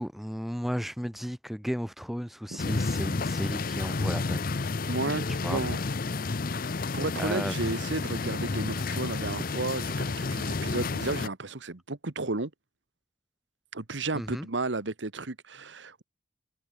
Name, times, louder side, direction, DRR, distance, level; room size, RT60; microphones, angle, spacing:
voice 1, 0.0-4.4 5.3-5.9 7.2-7.7 14.1-14.5, equal, ahead, 2.4 m, -34 dB
sound 1, 2.6-11.3, left 3 dB, 50° left, 0.7 m, -31 dB
voice 2, 4.9-5.8 6.9-12.5 13.7-16.0, right 3 dB, 75° right, 1.4 m, -33 dB
head